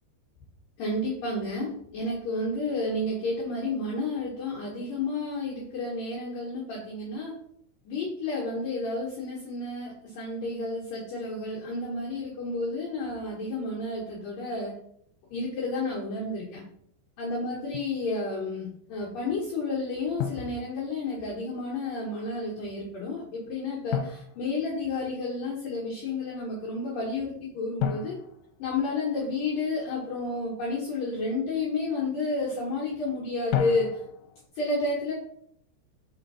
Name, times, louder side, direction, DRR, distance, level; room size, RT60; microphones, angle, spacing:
voice 1, 0.8-7.3 7.9-14.7 15.3-16.6 17.2-28.1 28.6-34.0 34.6-35.1, left 2 dB, 65° left, -6 dB, 2.5 m, -31 dB
Drum, 17.7-18.0 20.2-21.3 23.9-25.3 27.8-29.5 33.5-34.5, left 9 dB, 90° left, 3.0 m, -34 dB
5.9 x 4.5 x 4.0 m, 0.68 s
omnidirectional pair, 5.4 m